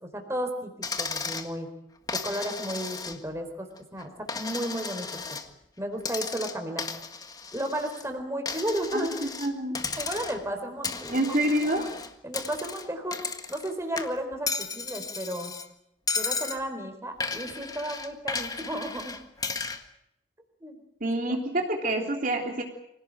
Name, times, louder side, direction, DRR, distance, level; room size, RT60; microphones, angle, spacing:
voice 1, 0.0-1.7 2.1-3.7 3.9-5.1 5.8-6.8 7.5-9.1 10.0-11.4 12.2-13.2 13.5-15.5 16.1-19.2 20.6-20.8, right 1 dB, 15° right, 5 dB, 4.1 m, -33 dB
Coin (dropping), 0.8-1.5 2.1-3.4 3.8-5.5 6.0-8.0 8.5-9.5 9.7-10.5 10.8-13.7 14.0-15.7 16.1-16.6 17.2-19.8, left 4 dB, 20° left, 1.7 m, -34 dB
voice 2, 8.9-9.8 11.1-11.9 21.0-22.6, right 1 dB, 50° right, 2 dB, 3.4 m, -27 dB
25.5 x 17.5 x 8.9 m, 0.79 s
head